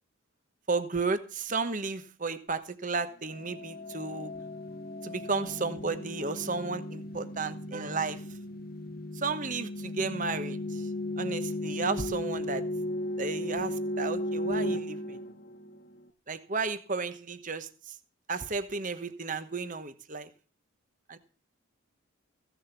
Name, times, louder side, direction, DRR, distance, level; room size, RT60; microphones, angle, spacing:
voice 1, 0.7-4.3 5.0-8.2 9.1-10.9 11.2-12.6 13.2-15.2 16.3-18.0 18.3-20.3 21.1-21.2, right 4 dB, 40° right, 11 dB, 1.1 m, -33 dB
sound 1, 3.3-16.0, left 1 dB, 45° left, 1.0 m, -36 dB
16.0 x 7.3 x 7.1 m, 0.37 s
head